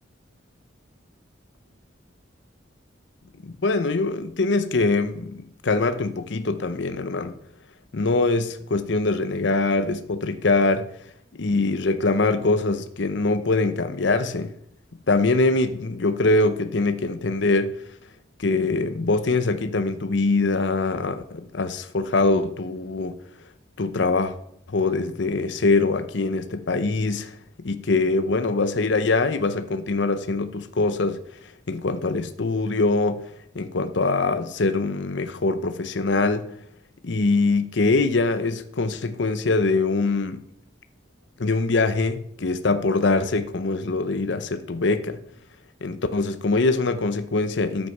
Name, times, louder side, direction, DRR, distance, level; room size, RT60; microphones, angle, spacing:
voice 1, 3.4-5.4 5.6-7.3 7.9-10.9 11.3-14.5 15.1-17.7 18.4-23.1 23.8-24.4 24.7-27.4 27.6-31.2 31.7-33.2 33.5-36.5 37.0-40.4 41.4-45.2 45.8-47.9, left 3 dB, 70° left, 0.7 m, -23 dB
9.6 x 8.2 x 6.0 m
head